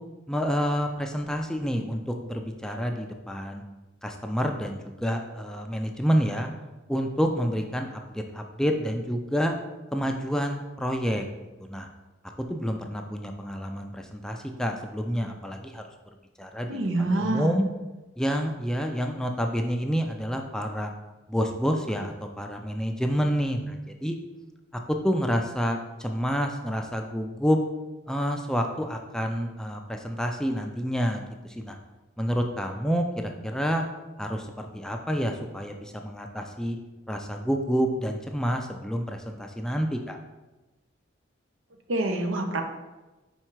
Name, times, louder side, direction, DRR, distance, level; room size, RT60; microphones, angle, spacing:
voice 1, 0.3-3.6 4.0-6.5 6.9-9.6 9.9-11.3 11.6-11.9 12.5-15.8 16.4-17.7 18.2-20.9 21.3-24.2 24.7-27.6 28.1-31.8 32.2-33.8 34.2-36.8 37.1-40.2, equal, 5° left, 3 dB, 0.4 m, -28 dB
voice 2, 16.7-17.6 41.9-42.6, right 2 dB, 85° right, 4 dB, 0.8 m, -26 dB
4.8 x 4.4 x 4.6 m, 1.1 s
head